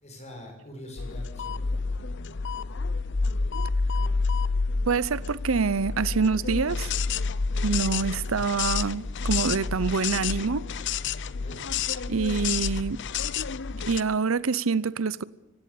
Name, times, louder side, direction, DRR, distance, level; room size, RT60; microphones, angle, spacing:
voice 1, 0.0-1.8 11.4-11.6, equal, 35° left, 6.3 m, -44 dB
sound 1, 1.0-14.0, left 4 dB, 60° left, 0.7 m, -29 dB
voice 2, 4.9-6.9 7.6-10.7 12.1-13.0 13.9-15.2, right 5 dB, 75° right, 0.8 m, -26 dB
25.0 x 16.5 x 8.5 m
head